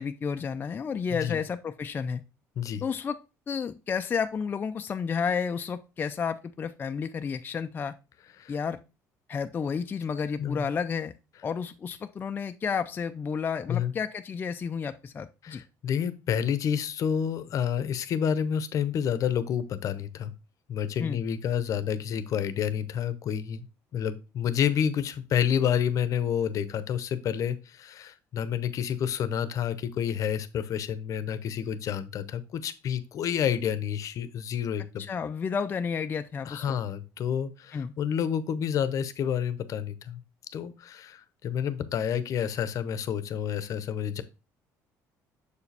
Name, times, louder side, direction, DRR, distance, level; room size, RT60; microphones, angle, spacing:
voice 1, 0.0-2.2 2.8-3.2 3.5-7.9 8.5-8.8 9.3-11.1 11.4-15.6 21.0-21.2 35.0-36.8 37.7-37.9, left 6 dB, 30° left, 7 dB, 0.4 m, -31 dB
voice 2, 15.4-20.3 20.7-23.7 23.9-35.0 36.5-40.2 40.5-44.2, left 8 dB, 55° left, 13 dB, 0.7 m, -29 dB
6.7 x 4.8 x 3.3 m, 0.29 s
cardioid pair, 120°, 7 cm